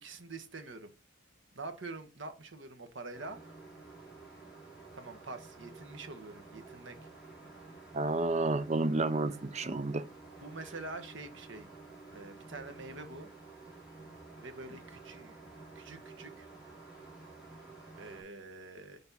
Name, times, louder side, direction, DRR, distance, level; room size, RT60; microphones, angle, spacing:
voice 1, 0.0-0.9 1.5-3.4 4.9-7.0 10.4-11.7 12.1-13.3 14.4-15.4 15.7-16.5 18.0-19.0, right 3 dB, 60° right, 1.2 m, -45 dB
sound 1, 3.1-18.2, right 3 dB, 5° right, 4.0 m, -52 dB
voice 2, 7.9-10.1, right 2 dB, 30° right, 0.5 m, -30 dB
6.9 x 5.2 x 4.1 m
head